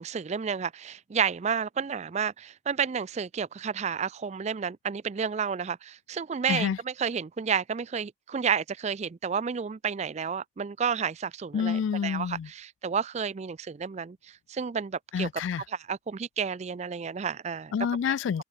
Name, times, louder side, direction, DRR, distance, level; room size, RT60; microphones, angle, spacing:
voice 1, 0.0-15.3 15.9-17.7 18.0-18.1, right 6 dB, 35° right, 0.3 m, -31 dB
voice 2, 11.5-12.5 15.1-15.6 17.7-18.4, left 7 dB, 65° left, 0.3 m, -28 dB
head